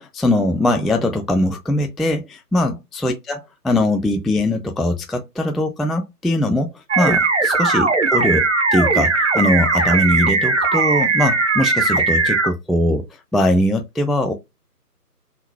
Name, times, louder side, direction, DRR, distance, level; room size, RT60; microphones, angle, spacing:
voice 1, 0.0-8.5 8.7-14.3, left 1 dB, ahead, 0.3 m, -21 dB
sound 1, 6.9-12.5, right 3 dB, 45° right, 0.7 m, -18 dB
3.7 x 2.5 x 4.3 m
figure-of-eight pair, 170°, 48 cm